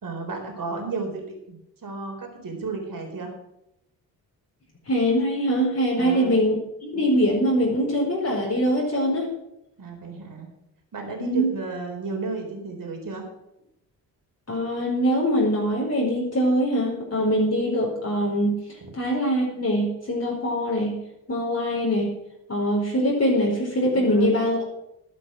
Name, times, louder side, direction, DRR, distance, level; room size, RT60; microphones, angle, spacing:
voice 1, 0.0-3.3 6.0-6.5 9.8-10.5 10.9-13.2 18.8-18.9 23.9-24.3, right 3 dB, 40° right, 3 dB, 4.4 m, -33 dB
voice 2, 4.9-9.3 11.2-11.6 14.5-18.6 18.9-21.0 21.3-22.1 22.5-24.6, equal, 30° left, -2 dB, 4.6 m, -23 dB
12.0 x 9.3 x 6.5 m, 0.85 s
hypercardioid pair, 40°, 48 cm